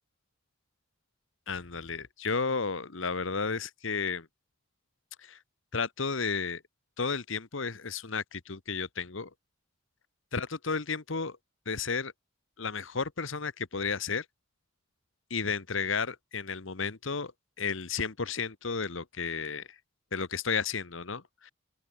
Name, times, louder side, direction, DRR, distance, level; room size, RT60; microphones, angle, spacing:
voice 1, 1.5-4.3 5.2-5.4 5.7-6.6 7.0-9.3 10.3-11.4 11.7-12.1 12.6-14.2 15.3-17.3 17.6-19.7 20.1-21.5, left 5 dB, 65° left, 1.2 m, -33 dB
open air
head